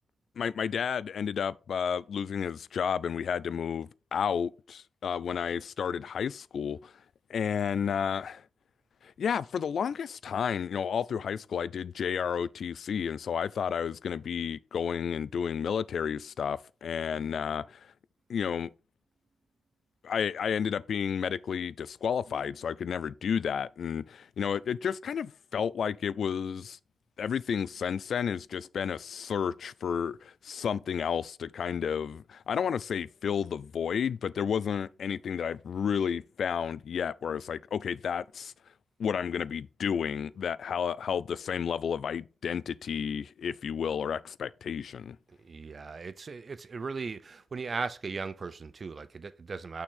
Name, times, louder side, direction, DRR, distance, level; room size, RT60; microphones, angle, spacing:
voice 1, 0.4-6.9 7.3-8.4 9.0-17.8 18.3-18.7 20.0-26.8 27.2-38.5 39.0-45.2, left 7 dB, 75° left, 0.3 m, -31 dB
voice 2, 45.3-49.8, right 4 dB, 50° right, 0.5 m, -38 dB
6.3 x 6.1 x 3.7 m
cardioid pair, 85°, 0 cm